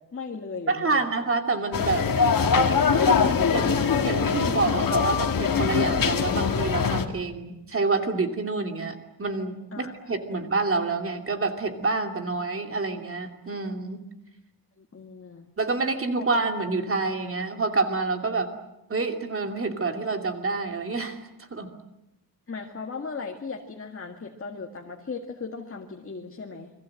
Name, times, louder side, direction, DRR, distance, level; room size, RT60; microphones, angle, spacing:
voice 1, 0.0-1.3 3.5-3.8 4.6-4.8 9.7-10.1 14.8-15.4 16.2-16.3 22.5-26.7, left 4 dB, 35° left, 2 dB, 2.0 m, -37 dB
voice 2, 0.7-2.1 3.1-3.7 4.0-14.0 15.6-18.5 18.9-21.2 21.5-21.7, right 3 dB, 35° right, 4 dB, 2.8 m, -27 dB
sound 1, 1.7-7.1, left 5 dB, 60° left, 2.2 m, -22 dB
29.5 x 22.5 x 7.8 m, 0.93 s
wide cardioid pair, 170°, 38 cm